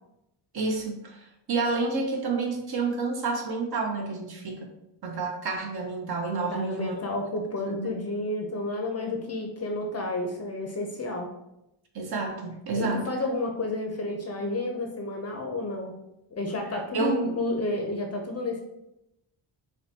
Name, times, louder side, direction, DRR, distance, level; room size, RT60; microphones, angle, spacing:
voice 1, 0.5-4.7 5.0-7.0 7.7-8.0 11.9-13.1 16.9-17.2, right 3 dB, 50° right, 2 dB, 0.9 m, -29 dB
voice 2, 6.5-11.3 12.7-15.9 16.3-18.6, left 2 dB, 30° left, 2 dB, 0.6 m, -31 dB
5.5 x 2.3 x 2.8 m, 0.85 s
cardioid pair, 105°, 49 cm